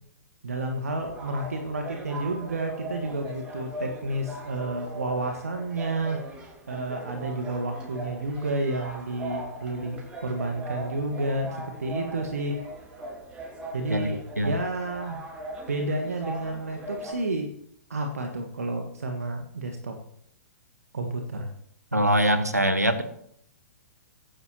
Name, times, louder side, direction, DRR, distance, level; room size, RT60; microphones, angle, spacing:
voice 1, 0.4-6.2 6.7-12.6 13.7-15.2 15.7-17.5 17.9-20.0 20.9-21.5, right 2 dB, 70° right, 4 dB, 1.6 m, -30 dB
sound 1, 1.0-17.1, right 2 dB, 15° right, 6.5 m, -39 dB
voice 2, 21.9-23.0, equal, 90° right, 11 dB, 1.5 m, -22 dB
22.5 x 10.5 x 3.0 m, 0.70 s
figure-of-eight pair, 115°, 8 cm